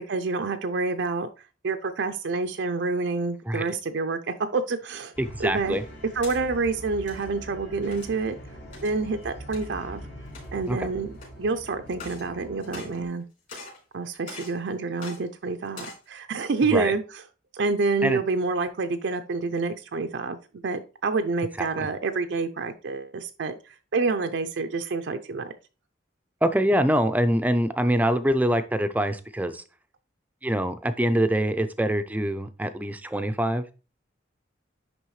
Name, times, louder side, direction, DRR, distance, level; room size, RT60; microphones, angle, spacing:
voice 1, 0.1-1.3 1.6-5.1 5.4-5.8 6.1-8.4 8.8-10.0 10.5-11.1 11.4-13.2 13.9-17.2 17.5-20.4 20.6-25.5, right 4 dB, 65° right, 7 dB, 0.5 m, -28 dB
sound 1, 5.1-13.0, equal, 65° left, 2.2 m, -43 dB
voice 2, 5.2-5.8 10.7-10.9 16.7-16.9 18.0-18.2 21.6-21.9 26.4-29.6 30.4-33.7, equal, 10° right, 10 dB, 0.4 m, -24 dB
sound 2, 6.1-6.4 6.9-7.2 7.9-8.2 8.7-9.0 9.5-9.7 10.2-10.7 11.2-11.3 11.9-12.3 12.6-13.2 13.5-13.8 14.3-14.6 15.0-15.2 15.6-16.0, left 3 dB, 45° left, 3.8 m, -42 dB
10.5 x 3.5 x 3.1 m, 0.34 s
head